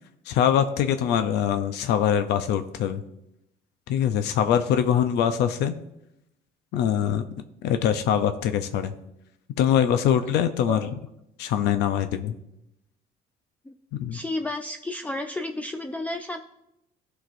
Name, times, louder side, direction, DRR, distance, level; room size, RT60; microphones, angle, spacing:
voice 1, 0.3-3.0 3.9-5.8 6.7-7.2 7.6-8.9 9.6-10.9 11.4-12.3 14.0-14.2, left 9 dB, 80° left, 9 dB, 0.6 m, -23 dB
voice 2, 14.1-16.4, left 1 dB, 10° left, 5 dB, 0.4 m, -32 dB
15.5 x 5.9 x 2.6 m, 0.84 s
cardioid pair, 110°, 17 cm